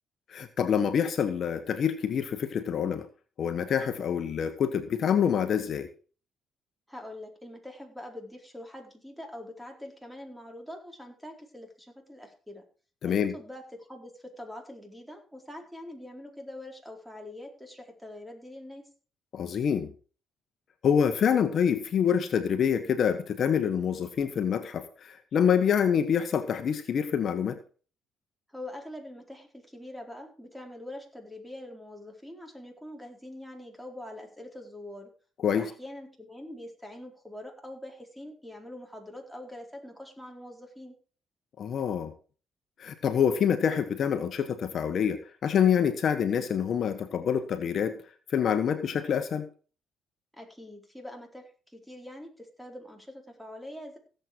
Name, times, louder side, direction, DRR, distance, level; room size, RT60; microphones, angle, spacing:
voice 1, 0.3-3.1 3.4-5.9 13.0-13.3 19.3-19.9 20.8-27.6 35.4-35.7 41.6-42.1 42.8-48.0 48.3-49.5, left 8 dB, 55° left, 9 dB, 1.4 m, -26 dB
voice 2, 6.9-12.6 13.1-18.9 28.5-35.1 35.5-41.0 50.3-54.0, left 1 dB, ahead, 3 dB, 4.3 m, -44 dB
16.5 x 7.9 x 4.7 m, 0.38 s
cardioid pair, 95°, 0 cm